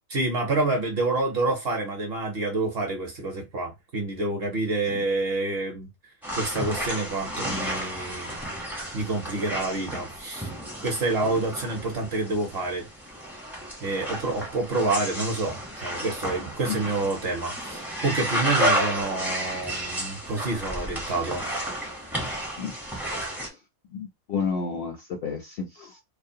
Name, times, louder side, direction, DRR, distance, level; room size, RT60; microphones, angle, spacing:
voice 1, 0.1-8.3 8.9-10.5 10.8-12.9 13.8-21.5, right 2 dB, 55° right, 0.8 m, -28 dB
sound 1, 6.2-23.5, right 1 dB, ahead, 0.4 m, -32 dB
voice 2, 23.2-23.6 23.9-26.0, left 5 dB, 65° left, 0.6 m, -31 dB
2.5 x 2.0 x 2.6 m
omnidirectional pair, 1.4 m